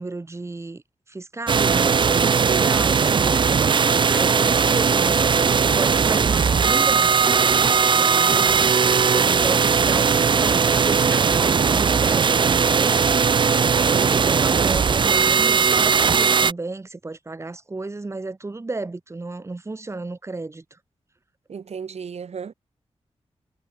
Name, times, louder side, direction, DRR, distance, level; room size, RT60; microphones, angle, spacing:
voice 1, 0.0-3.8 4.1-7.1 7.9-13.0 13.9-20.8, right 3 dB, 25° right, 3.6 m, -33 dB
sound 1, 1.5-16.5, right 6 dB, 45° right, 0.6 m, -18 dB
voice 2, 2.2-2.8 13.5-14.4 21.5-22.5, right 6 dB, 70° right, 4.9 m, -34 dB
wide cardioid pair, 150°, 11 cm